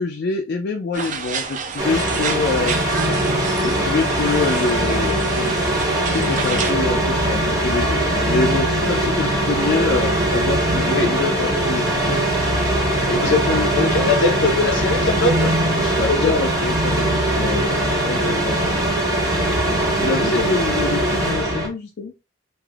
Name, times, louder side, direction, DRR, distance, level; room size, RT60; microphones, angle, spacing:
voice 1, 0.0-2.8 3.6-5.8 6.1-12.2 15.9-18.9 19.7-22.1, left 4 dB, 55° left, 2 dB, 0.4 m, -26 dB
sound 1, 0.9-6.7, right 5 dB, 40° right, 0.4 m, -29 dB
sound 2, 1.8-21.7, right 1 dB, 15° right, 0.9 m, -21 dB
voice 2, 13.0-16.4 20.2-20.4, left 3 dB, 85° left, 3 dB, 0.7 m, -22 dB
3.3 x 2.5 x 2.4 m, 0.27 s
head